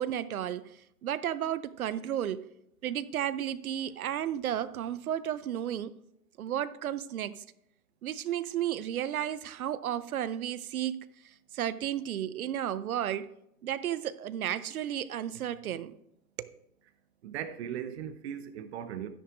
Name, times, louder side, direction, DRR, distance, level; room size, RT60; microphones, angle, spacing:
voice 1, 0.0-2.5 2.8-5.9 6.4-7.4 8.0-13.3 13.6-15.9 16.4-16.6, right 10 dB, 60° right, 0.6 m, -33 dB
voice 2, 17.2-19.1, right 9 dB, 40° right, 0.9 m, -38 dB
12.5 x 10.0 x 2.5 m
hypercardioid pair, 125°, 49 cm